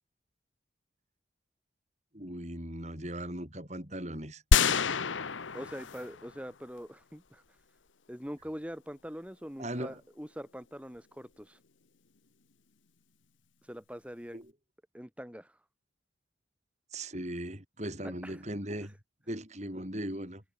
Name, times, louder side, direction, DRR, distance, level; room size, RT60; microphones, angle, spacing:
voice 1, 2.1-4.4 9.6-10.0 14.3-14.5 16.9-18.9 19.3-20.4, right 1 dB, 35° right, 6.6 m, -38 dB
sound 1, 4.5-6.4 6.8-6.9, left 5 dB, 85° left, 1.0 m, -27 dB
voice 2, 5.5-7.6 8.1-11.6 13.6-14.4 14.9-15.6 18.0-18.4, equal, 5° right, 6.7 m, -43 dB
head